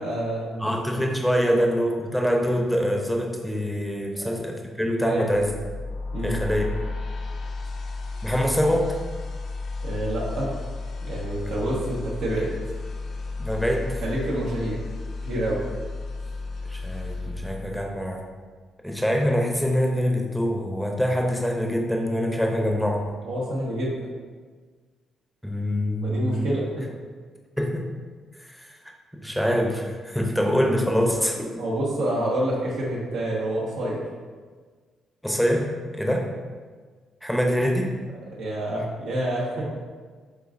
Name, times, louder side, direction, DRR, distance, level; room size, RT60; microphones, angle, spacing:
voice 1, 0.0-0.7 1.4-1.5 4.2-4.3 5.0-5.2 6.1-6.4 9.8-10.5 11.0-12.5 14.0-14.8 15.2-15.6 23.2-24.1 26.0-26.9 31.2-31.3 31.6-34.0 38.4-39.6, right 1 dB, 85° right, -4 dB, 1.3 m, -28 dB
voice 2, 0.6-5.5 6.2-6.6 8.2-9.0 13.4-14.0 16.6-18.2 18.8-23.2 25.4-26.5 27.6-27.9 28.4-28.7 29.2-31.5 35.2-36.3 37.2-38.0, equal, ahead, 1 dB, 0.6 m, -24 dB
sound 1, 5.2-18.3, left 3 dB, 60° left, 0.4 m, -33 dB
7.8 x 2.6 x 2.5 m, 1.5 s
cardioid pair, 90°, 0 cm